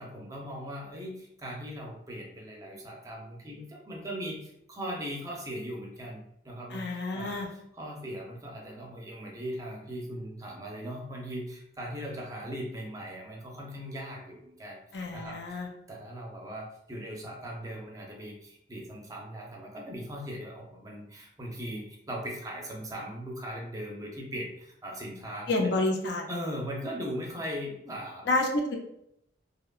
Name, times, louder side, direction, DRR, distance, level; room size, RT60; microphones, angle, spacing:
voice 1, 0.0-7.4 7.8-14.8 15.1-15.4 15.9-25.7 26.3-28.3, equal, 20° right, -1 dB, 0.5 m, -39 dB
voice 2, 6.7-7.5 14.9-15.7 25.5-26.3 28.3-28.8, left 2 dB, 70° left, 1 dB, 0.5 m, -29 dB
2.8 x 2.2 x 2.3 m, 0.76 s
head